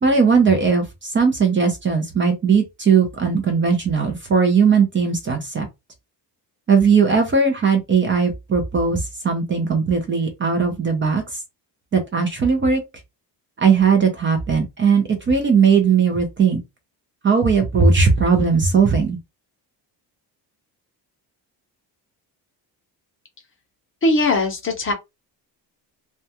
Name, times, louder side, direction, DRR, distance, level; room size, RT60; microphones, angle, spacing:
voice 1, 0.0-5.7 6.7-11.4 11.9-12.8 13.6-16.6 17.2-19.2, right 5 dB, 30° right, 0.5 m, -18 dB
voice 2, 24.0-24.9, left 2 dB, 30° left, 0.7 m, -19 dB
2.3 x 2.2 x 2.8 m
cardioid pair, 160°, 41 cm